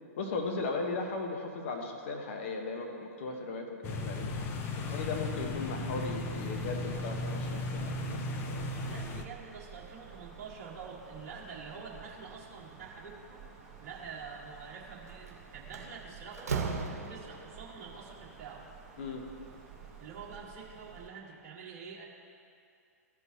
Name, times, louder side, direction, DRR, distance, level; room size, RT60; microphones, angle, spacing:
voice 1, 0.2-4.3 4.9-8.6 19.0-19.2, left 3 dB, 50° left, 3 dB, 1.2 m, -37 dB
sound 1, 3.8-9.2, left 2 dB, 25° left, 0.7 m, -36 dB
Wind, 4.3-21.1, right 6 dB, 5° right, 2.0 m, -52 dB
voice 2, 4.7-5.1 8.7-13.4 13.8-16.6 17.1-18.7 20.0-22.1, right 5 dB, 40° right, -6 dB, 1.5 m, -46 dB
Slam, 15.1-15.3 15.7-17.6, right 5 dB, 70° right, 1.0 m, -36 dB
15.0 x 5.4 x 2.9 m, 2.4 s
figure-of-eight pair, 115°, 8 cm